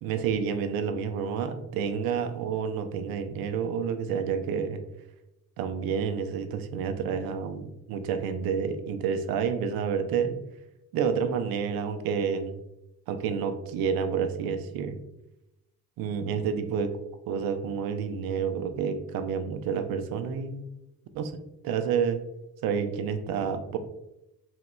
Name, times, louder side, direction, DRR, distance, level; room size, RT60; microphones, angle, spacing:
voice 1, 0.0-4.8 5.6-10.4 10.9-12.6 13.1-14.9 16.0-16.9 17.3-20.6 21.1-21.3 21.6-22.2 22.6-23.8, right 6 dB, 50° right, 8 dB, 0.5 m, -29 dB
4.0 x 2.8 x 2.2 m, 0.92 s
figure-of-eight pair, 45°, 48 cm